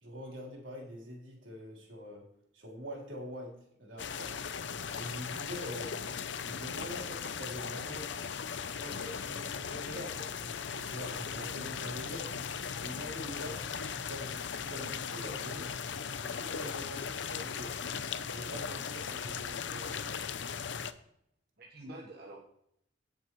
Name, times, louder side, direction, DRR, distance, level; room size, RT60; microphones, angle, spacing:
voice 1, 0.0-2.3 2.5-4.3 4.9-8.1 8.8-12.3 12.8-13.6 14.0-15.8 16.2-17.7 18.3-20.3, equal, 85° right, -2 dB, 3.8 m, -45 dB
sound 1, 4.0-20.9, left 6 dB, 70° left, 0.6 m, -38 dB
voice 2, 21.6-22.4, right 1 dB, 55° right, -2 dB, 1.3 m, -48 dB
17.0 x 7.1 x 3.1 m, 0.75 s
head